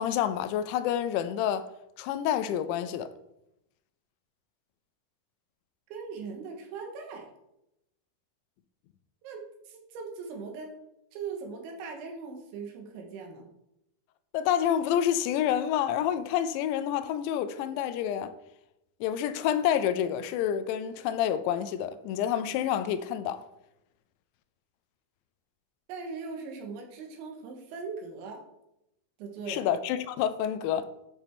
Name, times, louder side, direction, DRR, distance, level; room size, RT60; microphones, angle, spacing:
voice 1, 0.0-1.7 2.0-3.1 14.3-18.3 19.0-23.4 29.5-30.9, left 10 dB, 85° left, 2.8 m, -28 dB
voice 2, 5.9-7.3 9.2-10.8 11.1-13.5 25.9-28.4 29.2-29.7, right 5 dB, 80° right, 3.6 m, -40 dB
11.5 x 5.4 x 3.5 m
omnidirectional pair, 5.4 m